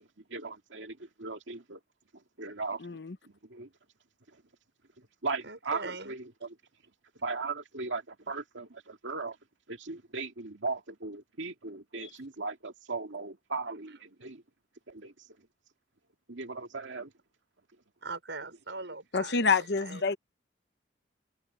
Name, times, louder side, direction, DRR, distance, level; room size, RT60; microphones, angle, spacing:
voice 1, 0.3-1.8 2.4-3.0 3.5-3.7 5.2-6.5 7.2-9.4 9.7-14.4 14.9-15.1 16.3-17.1, right 3 dB, 90° right, 2.3 m, -37 dB
voice 2, 2.8-3.1 19.1-20.2, left 4 dB, 65° left, 0.9 m, -27 dB
voice 3, 5.4-6.2 18.0-20.0, right 3 dB, 75° right, 5.6 m, -41 dB
head